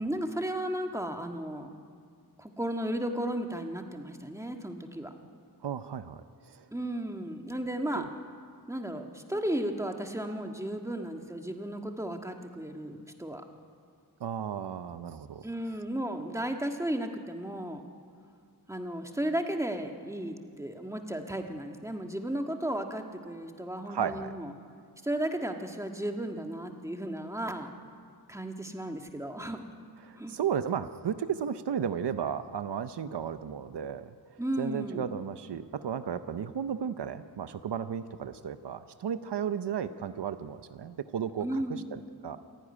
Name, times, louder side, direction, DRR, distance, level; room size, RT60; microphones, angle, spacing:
voice 1, 0.0-1.7 2.4-5.1 6.7-8.1 8.7-13.4 15.4-17.8 18.7-24.5 25.0-27.7 28.3-29.6 30.2-30.4 34.4-35.1 41.4-42.0, right 1 dB, 5° right, 4 dB, 1.7 m, -34 dB
voice 2, 5.6-6.7 8.0-8.1 14.2-15.4 23.9-24.3 30.0-42.4, right 8 dB, 85° right, 11 dB, 0.7 m, -34 dB
27.5 x 10.0 x 9.8 m, 2.2 s
wide cardioid pair, 85°, 40 cm